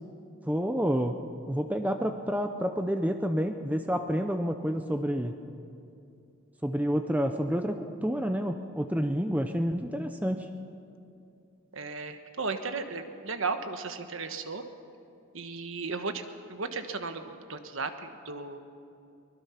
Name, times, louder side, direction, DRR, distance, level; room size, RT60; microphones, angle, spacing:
voice 1, 0.5-1.2 1.5-5.3 6.6-10.5, equal, 5° right, 6 dB, 0.6 m, -29 dB
voice 2, 11.7-14.6 15.3-18.6, right 4 dB, 65° right, 8 dB, 1.3 m, -35 dB
23.5 x 20.0 x 5.8 m, 2.6 s
head